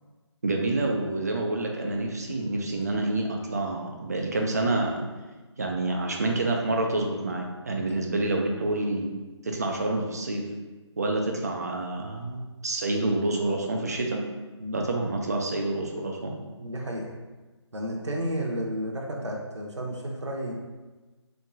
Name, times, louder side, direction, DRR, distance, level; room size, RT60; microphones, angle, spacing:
voice 1, 0.4-5.1 5.6-9.1 9.4-10.4 11.0-14.2 14.7-16.3, right 2 dB, 35° right, 1 dB, 0.4 m, -28 dB
voice 2, 16.6-17.1 17.7-20.5, equal, 70° right, -1 dB, 0.7 m, -32 dB
3.5 x 3.0 x 2.6 m, 1.2 s
figure-of-eight pair, 155°, 15 cm